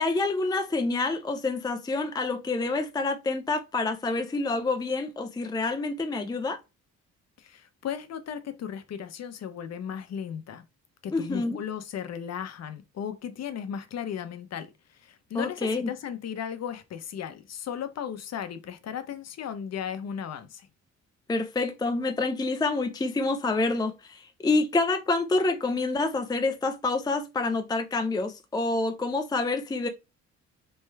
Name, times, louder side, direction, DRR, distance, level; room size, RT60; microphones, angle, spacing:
voice 1, 0.0-6.6 11.1-11.6 15.3-15.9 21.3-29.9, left 3 dB, 15° left, 0.5 m, -27 dB
voice 2, 7.4-10.6 11.0-20.7, left 8 dB, 60° left, 0.8 m, -36 dB
4.2 x 3.3 x 3.4 m
cardioid pair, 90°, 30 cm